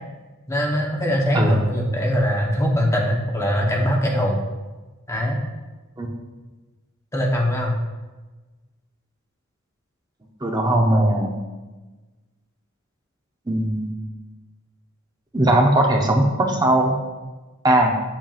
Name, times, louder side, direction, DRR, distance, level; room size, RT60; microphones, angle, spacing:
voice 1, 0.5-4.4 5.1-5.4 7.1-7.7, equal, 15° left, -1 dB, 0.9 m, -22 dB
voice 2, 10.4-11.3 13.5-13.9 15.3-17.0 17.6-17.9, right 1 dB, 20° right, 1 dB, 0.7 m, -18 dB
7.5 x 7.3 x 2.4 m, 1.2 s
head